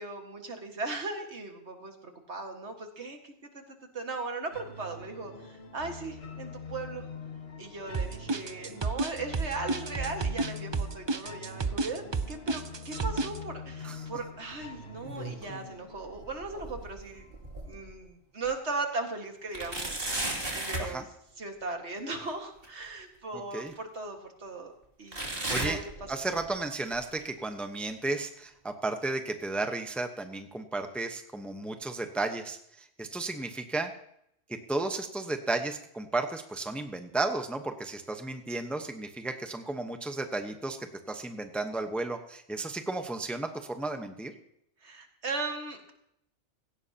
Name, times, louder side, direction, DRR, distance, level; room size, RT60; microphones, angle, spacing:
voice 1, 0.0-7.1 7.6-17.2 17.7-21.1 21.4-24.7 25.0-25.8 44.8-45.9, right 3 dB, 70° right, 4 dB, 2.1 m, -38 dB
sound 1, 4.5-17.5, left 4 dB, 60° left, 1.7 m, -45 dB
sound 2, 7.9-13.4, right 3 dB, 30° right, 0.5 m, -30 dB
sound 3, 14.8-15.7 16.1-18.0 18.5-18.6 19.5-20.9 22.6-22.7 23.7-23.8 25.1-26.5 26.9-27.2 27.9-28.0 28.9-29.0, right 1 dB, 55° right, 3.0 m, -35 dB
voice 2, 23.3-23.7 25.5-25.8 26.1-33.9 34.5-40.8 41.1-44.3, right 2 dB, ahead, 6 dB, 0.9 m, -33 dB
17.0 x 16.5 x 2.9 m, 0.74 s
omnidirectional pair, 1.2 m